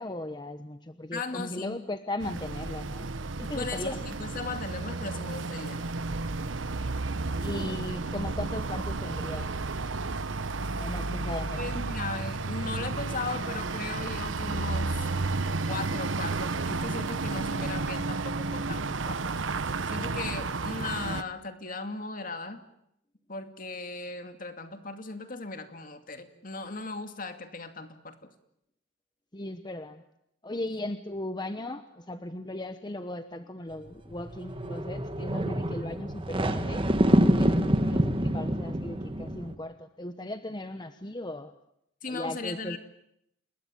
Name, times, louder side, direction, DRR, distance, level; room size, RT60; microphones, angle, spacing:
voice 1, 0.0-3.1 3.4-4.0 7.4-9.5 10.8-11.8 29.3-30.0 30.4-36.9 37.2-41.5 42.1-42.8, left 1 dB, 25° left, 9 dB, 1.1 m, -37 dB
voice 2, 1.1-1.8 3.5-5.9 11.6-15.1 15.7-19.2 19.7-22.6 23.3-28.2 42.0-42.8, left 3 dB, 45° left, 7 dB, 2.4 m, -37 dB
sound 1, 2.2-21.2, right 3 dB, 85° right, 1.0 m, -32 dB
sound 2, 33.9-39.5, right 1 dB, 30° right, 1.7 m, -26 dB
28.0 x 21.0 x 8.8 m, 0.78 s
head